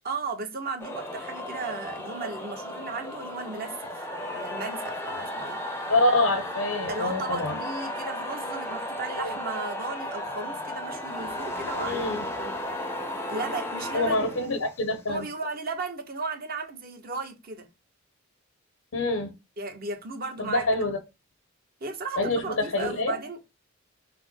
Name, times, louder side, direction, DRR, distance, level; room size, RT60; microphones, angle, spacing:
voice 1, 0.0-3.9 4.3-5.6 6.9-12.0 12.3-12.6 13.3-14.2 15.1-17.7 19.6-20.7 21.8-23.6, right 3 dB, 45° right, 0.9 m, -35 dB
sound 1, 0.8-15.0, left 1 dB, 10° left, 0.5 m, -35 dB
voice 2, 5.9-7.6 9.2-9.4 11.8-12.3 13.9-15.3 18.9-19.3 20.4-21.0 22.2-23.2, left 2 dB, 75° left, 0.7 m, -26 dB
5.6 x 2.0 x 3.8 m
head